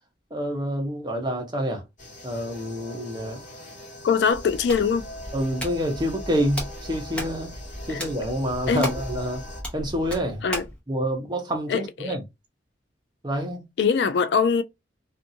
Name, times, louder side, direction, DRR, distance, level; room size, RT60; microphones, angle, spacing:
voice 1, 0.3-1.8 2.2-3.4 5.3-7.5 7.9-9.4 9.7-10.4 10.9-12.2 13.2-13.6, equal, 25° right, 0.8 m, -27 dB
sound 1, 2.0-9.6, left 1 dB, 40° left, 1.5 m, -42 dB
voice 2, 4.0-5.1 7.9-8.0 8.7-9.0 10.4-10.6 11.7-12.2 13.8-14.6, left 6 dB, 65° left, 0.3 m, -22 dB
Hands, 4.3-10.8, equal, 5° left, 0.9 m, -36 dB
2.6 x 2.5 x 2.6 m
head